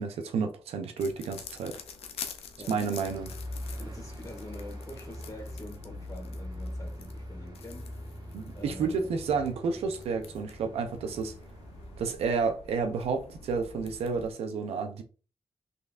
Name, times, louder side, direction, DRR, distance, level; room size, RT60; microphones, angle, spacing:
voice 1, 0.0-1.8 2.7-3.3 8.3-11.3 12.0-15.0, right 5 dB, 85° right, 0.6 m, -31 dB
sound 1, 1.0-14.3, left 5 dB, 85° left, 0.5 m, -47 dB
voice 2, 2.6-3.1 3.6-8.1 8.5-9.1, left 1 dB, 35° left, 1.6 m, -46 dB
sound 2, 3.0-12.0, equal, 45° right, 1.3 m, -42 dB
3.9 x 3.2 x 2.4 m
supercardioid pair, 45°, 10 cm